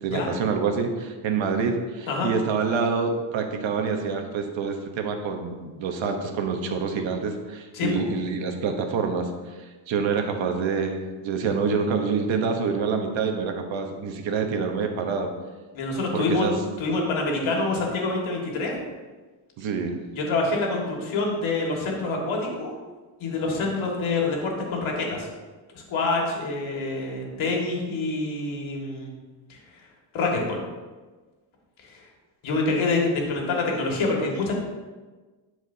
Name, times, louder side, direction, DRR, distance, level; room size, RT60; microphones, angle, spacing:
voice 1, 0.0-9.3 9.6-15.3 16.1-16.5 19.6-20.0, right 5 dB, 65° right, 5 dB, 1.2 m, -27 dB
voice 2, 15.7-16.4 16.8-18.8 20.1-22.7 23.2-25.3 25.7-29.1 29.5-29.8 30.1-30.6 31.8-32.1 32.4-34.5, left 3 dB, 70° left, -1 dB, 2.1 m, -26 dB
12.0 x 4.8 x 2.8 m, 1.3 s
cardioid pair, 90°, 49 cm